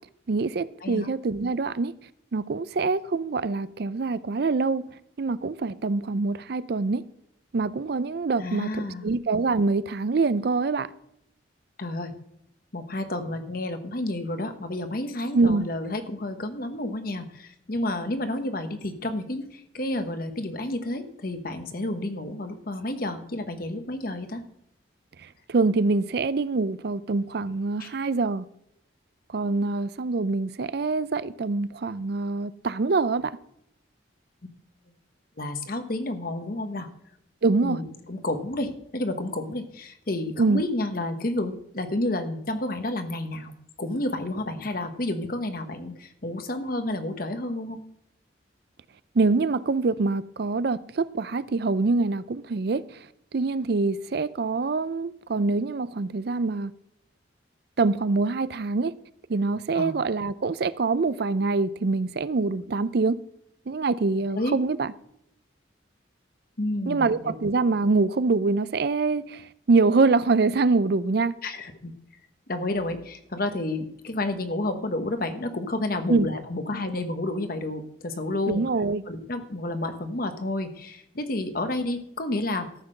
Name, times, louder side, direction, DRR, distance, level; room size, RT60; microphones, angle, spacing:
voice 1, 0.3-1.9 2.3-4.8 5.2-7.0 7.5-10.9 15.3-15.7 25.2-28.4 29.3-33.4 37.4-37.8 40.4-40.6 49.1-53.0 53.3-56.7 57.8-58.9 59.3-63.2 63.7-64.9 66.9-71.3 76.1-76.3 78.5-79.0, right 3 dB, 55° right, 0.5 m, -25 dB
voice 2, 8.4-9.1 11.8-12.1 12.7-24.4 27.8-27.9 34.4-34.5 35.4-36.9 37.6-43.5 43.8-47.8 59.7-59.9 64.3-64.5 66.6-67.3 71.4-71.9 72.5-78.6 79.1-82.7, left 1 dB, 50° left, 1.2 m, -30 dB
13.5 x 6.0 x 6.5 m
head